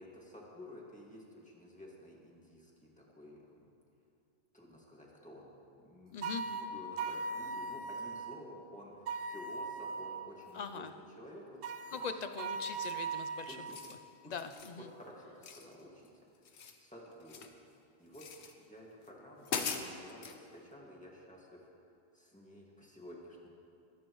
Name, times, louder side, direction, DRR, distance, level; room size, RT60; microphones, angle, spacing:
voice 1, 0.0-3.7 4.5-5.5 5.8-10.8 11.2-11.6 11.9-12.0 13.5-13.7 14.2-14.4 14.8-16.1 16.4-18.3 18.6-21.7 22.1-23.5, equal, 5° left, -4 dB, 2.0 m, -52 dB
voice 2, 6.1-6.4 10.5-10.9 11.9-13.6 14.2-14.9, left 6 dB, 50° left, 8 dB, 0.5 m, -41 dB
sound 1, 6.2-8.3 9.1-10.3 11.6-13.8, right 4 dB, 65° right, 0.8 m, -39 dB
sound 2, 12.8-13.1 13.6-14.0 14.4-14.8 15.4-16.1 16.3-17.6 18.1-18.5 19.0-19.1 19.4-20.4, left 6 dB, 80° left, 1.1 m, -41 dB
25.5 x 9.3 x 3.1 m, 2.6 s
omnidirectional pair, 1.1 m